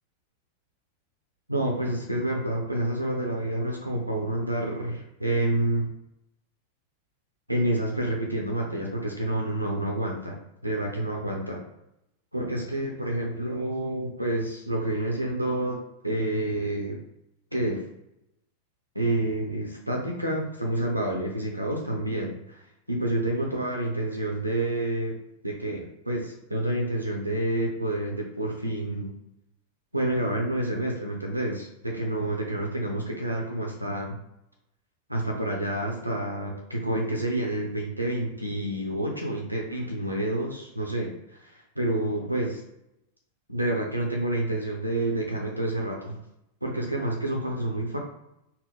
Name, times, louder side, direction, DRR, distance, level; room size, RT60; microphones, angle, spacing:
voice 1, 1.5-5.9 7.5-10.4 10.6-11.6 12.3-17.0 17.5-17.8 18.9-25.1 25.4-29.1 29.9-34.2 35.1-42.6 43.5-46.2 46.6-48.0, right 1 dB, 90° right, -1 dB, 0.6 m, -28 dB
4.2 x 2.1 x 3.7 m, 0.83 s
figure-of-eight pair, 90°, 0 cm